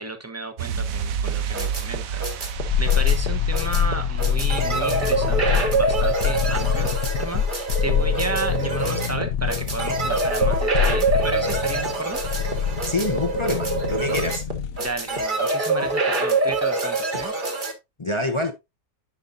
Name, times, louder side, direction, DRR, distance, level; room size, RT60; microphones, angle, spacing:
voice 1, 0.0-2.5 2.8-6.9 7.2-12.2 14.8-17.3, right 3 dB, 10° right, 0.9 m, -33 dB
sound 1, 0.6-7.1 7.3-7.5, right 7 dB, 70° right, 1.0 m, -32 dB
sound 2, 1.3-17.7, right 3 dB, 35° right, 1.4 m, -25 dB
sound 3, 2.6-14.9 15.2-15.3, left 8 dB, 65° left, 0.8 m, -25 dB
voice 2, 12.8-14.4 18.0-18.5, left 1 dB, 45° left, 0.4 m, -26 dB
10.5 x 5.5 x 2.5 m
omnidirectional pair, 1.6 m